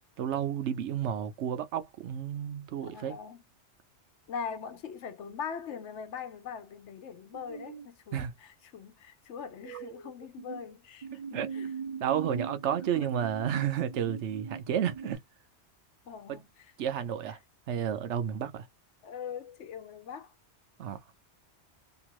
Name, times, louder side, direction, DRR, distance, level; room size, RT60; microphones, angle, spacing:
voice 1, 0.2-3.2 8.1-8.3 11.3-11.5 12.0-15.2 16.3-16.4 16.8-17.4 17.7-18.7 20.8-21.0, right 9 dB, 85° right, 1.0 m, -31 dB
voice 2, 2.8-3.4 4.3-11.7 12.9-13.1 16.1-16.7 17.0-17.1 19.0-20.3, left 7 dB, 85° left, 1.0 m, -42 dB
sound 1, 7.3-7.9 9.6-10.6 11.0-15.2, right 6 dB, 45° right, 0.4 m, -40 dB
2.9 x 2.4 x 2.9 m
omnidirectional pair, 1.2 m